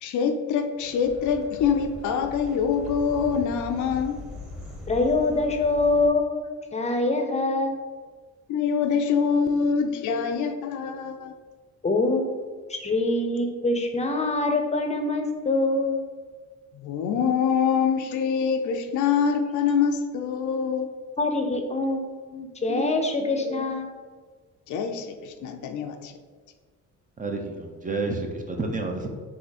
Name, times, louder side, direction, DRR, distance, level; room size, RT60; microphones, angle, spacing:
voice 1, 0.0-4.2 8.5-11.3 16.8-20.9 22.7-22.9 23.4-23.6 24.7-26.1, left 6 dB, 75° left, 7 dB, 0.5 m, -25 dB
sound 1, 0.8-6.1, left 2 dB, ahead, 0.9 m, -41 dB
voice 2, 4.9-7.8 11.8-12.3 12.7-16.0 21.2-22.0 22.3-23.9, left 2 dB, 20° left, 4 dB, 0.6 m, -24 dB
voice 3, 27.2-29.1, right 3 dB, 25° right, 3 dB, 0.6 m, -30 dB
3.7 x 2.8 x 4.0 m, 1.5 s
cardioid pair, 90°, 30 cm